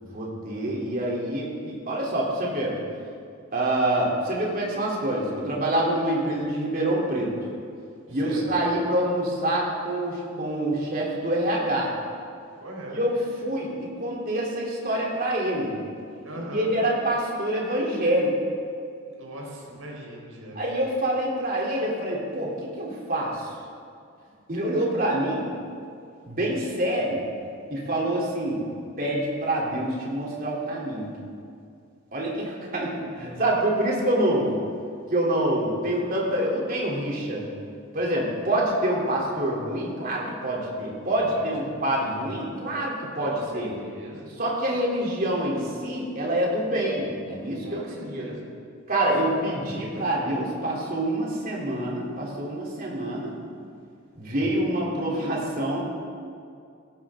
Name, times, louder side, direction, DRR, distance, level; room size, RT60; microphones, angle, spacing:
voice 1, 0.0-2.8 3.5-7.3 8.1-11.9 12.9-13.1 13.4-15.7 16.3-18.3 20.5-22.5 22.8-23.5 24.5-25.5 26.2-27.2 27.7-28.6 29.0-31.1 32.1-34.5 35.1-37.5 37.9-43.7 44.4-48.3 48.9-53.4 54.1-55.8, right 1 dB, 40° right, -4 dB, 3.4 m, -26 dB
voice 2, 8.1-8.4 12.6-13.0 16.2-16.8 19.1-20.6 32.7-33.0 41.1-41.5 43.1-44.3 47.6-48.5 49.0-49.6, right 1 dB, 75° right, -2 dB, 4.2 m, -40 dB
17.0 x 17.0 x 3.8 m, 2.3 s
head